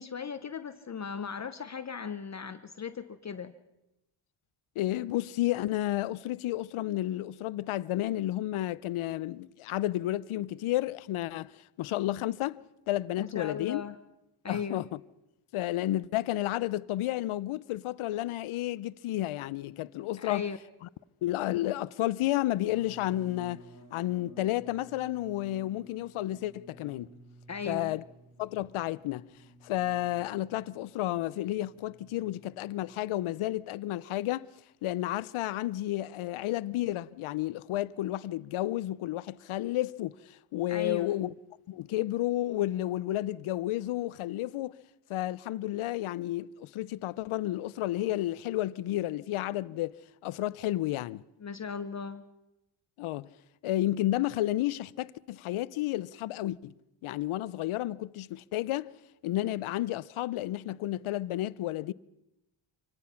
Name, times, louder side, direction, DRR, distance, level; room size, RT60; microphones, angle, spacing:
voice 1, 0.0-3.5 13.2-14.0 14.4-14.9 20.2-20.6 27.5-28.0 40.7-41.2 51.4-52.2, left 6 dB, 35° left, 0.8 m, -37 dB
voice 2, 4.8-13.8 14.5-15.0 15.5-20.5 21.2-23.6 23.9-27.1 27.7-28.0 28.4-29.3 29.6-34.5 34.8-41.3 41.7-44.8 45.1-50.0 50.2-51.2 53.0-53.3 53.6-56.7 57.0-58.9 59.2-61.9, left 15 dB, 75° left, 0.7 m, -31 dB
sound 1, 22.7-33.6, right 1 dB, 40° right, 3.4 m, -55 dB
26.0 x 18.0 x 5.8 m
cardioid pair, 120°, 49 cm